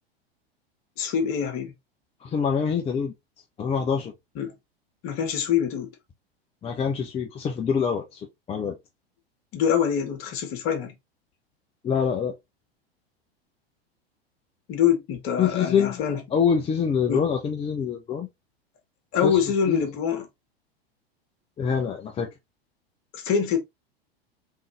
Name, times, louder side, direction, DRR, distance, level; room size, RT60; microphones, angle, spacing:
voice 1, 1.0-1.7 4.4-4.5 5.0-5.9 9.5-10.9 14.7-16.2 17.1-17.2 19.1-20.3 23.1-23.6, left 8 dB, 45° left, 1.8 m, -24 dB
voice 2, 2.2-3.1 3.6-4.1 6.6-8.8 11.8-12.3 15.4-16.0 16.3-18.3 19.2-19.4 19.7-19.8 21.6-22.3, left 7 dB, 20° left, 0.6 m, -25 dB
3.8 x 3.5 x 3.1 m
figure-of-eight pair, 90°, 31 cm